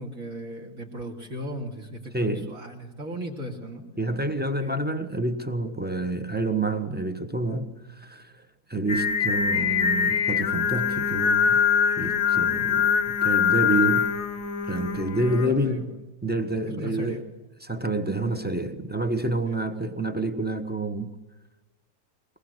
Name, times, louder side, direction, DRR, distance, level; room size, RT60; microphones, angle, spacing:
voice 1, 0.0-3.9 4.6-4.9 15.3-16.0 16.7-17.2 19.5-19.6, equal, 45° right, 3.1 m, -37 dB
voice 2, 2.1-2.5 4.0-8.4 8.7-14.1 14.7-15.9 16.2-17.2 17.6-21.1, right 2 dB, 5° right, 1.0 m, -28 dB
Singing, 8.9-15.5, left 7 dB, 55° left, 1.3 m, -23 dB
23.0 x 20.0 x 8.1 m
omnidirectional pair, 2.0 m